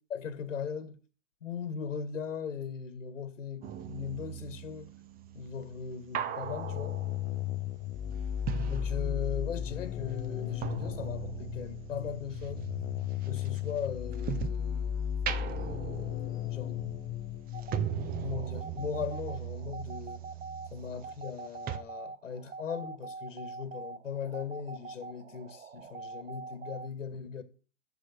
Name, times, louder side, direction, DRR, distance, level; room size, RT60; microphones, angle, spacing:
voice 1, 0.1-1.0 1.4-4.9 5.3-7.0 8.7-12.7 13.3-15.0 15.4-17.0 18.2-20.3 20.7-27.4, left 7 dB, 85° left, 2.0 m, -39 dB
sound 1, 3.6-9.6 9.9-14.7 15.1-21.4 21.7-21.8, right 10 dB, 25° right, 1.0 m, -40 dB
sound 2, 6.4-18.4, left 9 dB, 20° left, 0.6 m, -35 dB
sound 3, 17.5-26.9, right 4 dB, 90° right, 1.1 m, -45 dB
13.0 x 7.4 x 7.4 m
hypercardioid pair, 125°, 37 cm